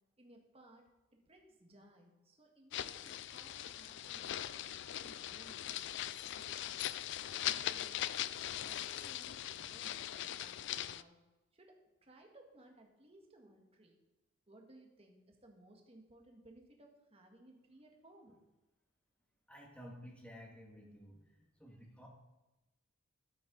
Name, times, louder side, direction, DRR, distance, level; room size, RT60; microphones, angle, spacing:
voice 1, 0.2-4.4 4.7-6.7 7.3-8.1 8.4-11.1 11.5-11.8 12.0-14.0 14.5-18.3, right 1 dB, 30° right, 2 dB, 1.7 m, -61 dB
sound 1, 2.7-11.0, left 12 dB, 60° left, 0.3 m, -41 dB
voice 2, 19.5-21.2 21.6-22.1, equal, 5° left, -1 dB, 1.9 m, -53 dB
13.0 x 8.5 x 3.9 m, 1.0 s
head